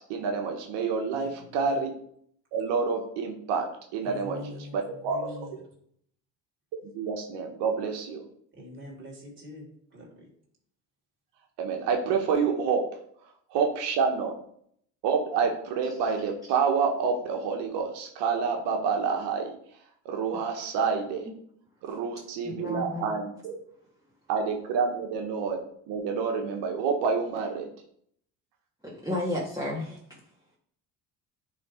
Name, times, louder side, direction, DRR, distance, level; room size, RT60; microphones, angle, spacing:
voice 1, 0.1-1.9 2.5-4.4 4.7-5.2 6.9-8.2 11.6-12.9 13.5-14.3 15.0-19.5 20.0-21.3 21.8-23.6 24.3-25.6 25.9-27.7, right 5 dB, 80° right, 3 dB, 1.2 m, -28 dB
voice 2, 1.1-1.8 4.0-5.6 8.5-10.3, left 1 dB, 30° right, -5 dB, 3.6 m, -44 dB
voice 3, 22.5-23.0 28.8-30.0, left 1 dB, 10° right, -6 dB, 2.0 m, -32 dB
9.3 x 3.7 x 4.9 m, 0.67 s
supercardioid pair, 80°, 41 cm